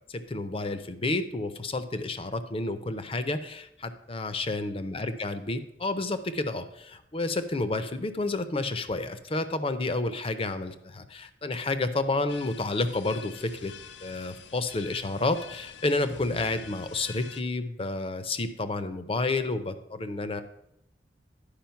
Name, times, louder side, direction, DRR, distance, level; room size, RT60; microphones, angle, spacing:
voice 1, 0.1-13.7 14.0-20.4, left 2 dB, 30° left, 11 dB, 0.6 m, -30 dB
sound 1, 12.3-17.4, left 7 dB, 80° left, 0.5 m, -46 dB
10.5 x 5.0 x 5.7 m, 0.81 s
head